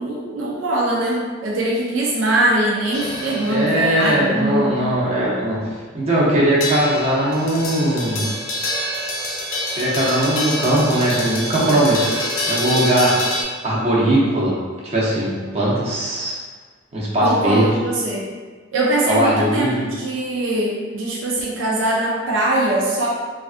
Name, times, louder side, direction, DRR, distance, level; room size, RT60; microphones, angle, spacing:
voice 1, 0.0-4.7 17.2-18.2 18.7-23.1, right 1 dB, 70° right, -3 dB, 0.4 m, -21 dB
sound 1, 2.9-13.4, left 1 dB, 80° left, 0.5 m, -27 dB
voice 2, 3.5-5.5 5.9-8.3 9.8-12.1 12.5-13.2 13.6-14.5 14.8-16.4 16.9-17.7 19.1-19.9, right 1 dB, 30° right, -7 dB, 0.7 m, -19 dB
3.3 x 2.4 x 2.4 m, 1.5 s
head